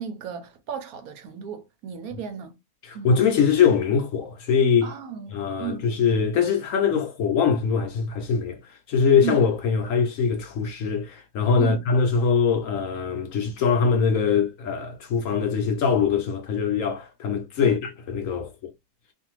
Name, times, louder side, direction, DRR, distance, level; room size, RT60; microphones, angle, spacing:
voice 1, 0.0-2.5 2.9-3.2 4.8-5.9 9.2-9.4 11.6-11.8 17.6-17.8, right 8 dB, 70° right, 1.1 m, -34 dB
voice 2, 2.9-4.9 5.3-18.5, left 6 dB, 65° left, 0.9 m, -22 dB
2.6 x 2.5 x 2.9 m
omnidirectional pair, 1.7 m